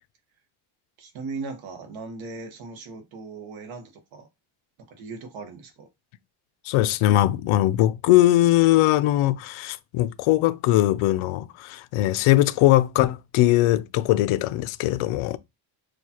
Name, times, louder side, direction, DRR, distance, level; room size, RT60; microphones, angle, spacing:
voice 1, 1.0-4.3 4.9-5.9, right 4 dB, 70° right, 1.3 m, -38 dB
voice 2, 6.7-15.4, left 15 dB, 80° left, 0.5 m, -20 dB
6.4 x 2.3 x 2.9 m
cardioid pair, 150°, 49 cm